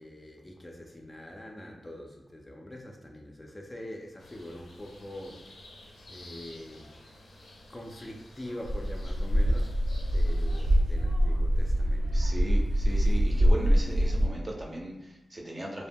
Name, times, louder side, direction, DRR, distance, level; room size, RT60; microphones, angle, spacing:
voice 1, 0.0-5.5 6.1-6.9 7.7-9.7 10.1-12.4 12.7-12.8, left 1 dB, 25° left, 1 dB, 0.3 m, -44 dB
sound 1, 4.2-10.8, left 1 dB, 85° left, 0.5 m, -51 dB
sound 2, 8.6-14.3, equal, 80° right, 0.4 m, -24 dB
voice 2, 12.1-15.9, right 1 dB, 30° right, -1 dB, 0.5 m, -37 dB
2.1 x 2.1 x 3.4 m, 0.94 s
cardioid pair, 70°, 0 cm